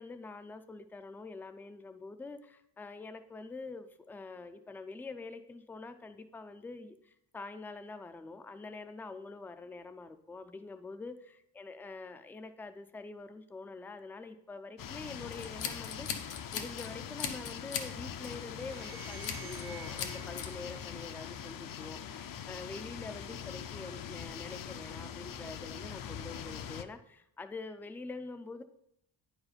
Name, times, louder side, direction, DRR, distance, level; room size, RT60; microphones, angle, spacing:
voice 1, 0.0-28.6, left 3 dB, 5° left, 9 dB, 0.3 m, -45 dB
sound 1, 14.8-26.8, left 8 dB, 50° left, 0.5 m, -43 dB
Scissors, 15.3-16.9 17.2-17.9 18.2-18.5 19.2-19.7 20.0-20.5, left 7 dB, 85° left, 1.1 m, -38 dB
sound 2, 18.5-21.8, right 9 dB, 65° right, 0.8 m, -52 dB
9.4 x 4.9 x 5.0 m, 0.76 s
wide cardioid pair, 145°, 43 cm